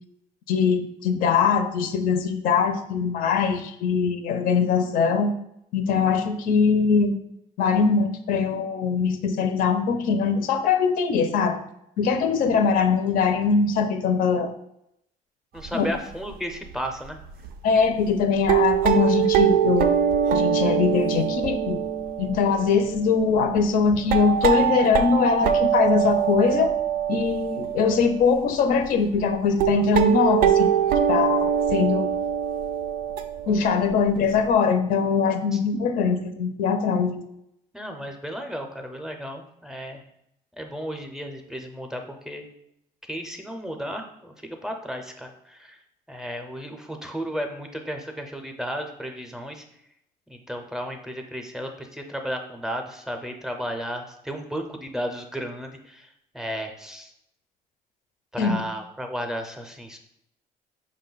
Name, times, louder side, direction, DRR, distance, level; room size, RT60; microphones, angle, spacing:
voice 1, 0.5-5.3 5.7-7.2 7.6-11.6 12.0-14.5 15.7-15.9 17.6-19.9 20.3-21.8 22.2-26.7 27.1-30.7 31.1-32.1 33.5-37.2 58.4-58.6, left 5 dB, 65° left, 8 dB, 0.5 m, -22 dB
voice 2, 15.5-17.2 35.5-35.6 37.7-40.0 40.6-42.5 43.1-45.8 46.1-49.6 50.3-56.1 56.3-57.1 58.3-60.0, equal, 5° right, 4 dB, 0.5 m, -34 dB
sound 1, 15.7-15.9 16.3-16.4 16.9-17.0 17.4-17.5 18.2-28.3 28.8-28.9 29.1-29.2 29.6-34.5, right 9 dB, 75° right, 0.4 m, -24 dB
5.0 x 2.2 x 3.9 m, 0.78 s
cardioid pair, 105°, 15 cm